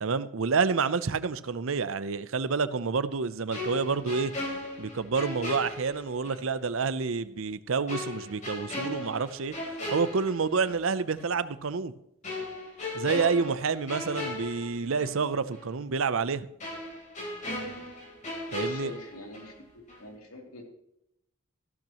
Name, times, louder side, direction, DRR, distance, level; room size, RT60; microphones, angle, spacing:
voice 1, 0.0-4.3 4.8-9.5 9.9-11.9 12.9-16.5 18.5-18.9, right 5 dB, 65° right, 15 dB, 0.6 m, -28 dB
sound 1, 3.5-6.5 6.8-6.9 7.9-10.8 11.2-11.4 12.2-15.2 15.5-15.7 16.6-19.6 19.9-20.1, left 1 dB, 35° left, 3.7 m, -37 dB
voice 2, 18.5-19.5 20.0-20.7, left 2 dB, 85° left, 1 dB, 2.8 m, -45 dB
14.5 x 12.0 x 3.0 m, 0.80 s
head